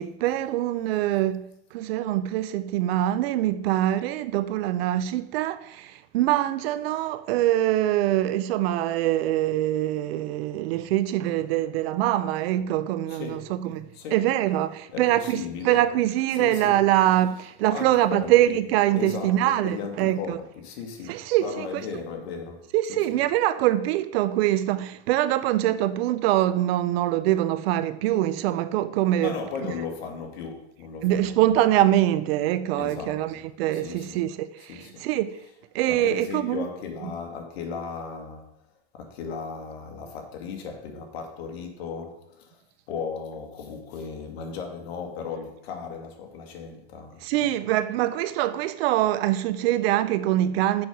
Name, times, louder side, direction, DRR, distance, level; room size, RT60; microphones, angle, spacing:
voice 1, 0.0-20.4 21.1-21.7 22.7-29.3 31.0-35.3 35.7-36.7 47.2-50.9, right 13 dB, 60° right, 0.7 m, -24 dB
voice 2, 13.1-13.6 13.9-14.2 14.9-15.9 16.4-16.9 17.7-18.6 19.0-23.2 29.2-31.6 32.8-33.4 33.7-34.2 34.7-35.1 35.8-38.5 38.9-42.6 42.9-47.5, left 6 dB, 65° left, 2.0 m, -36 dB
6.8 x 5.9 x 5.3 m
supercardioid pair, 135°, 34 cm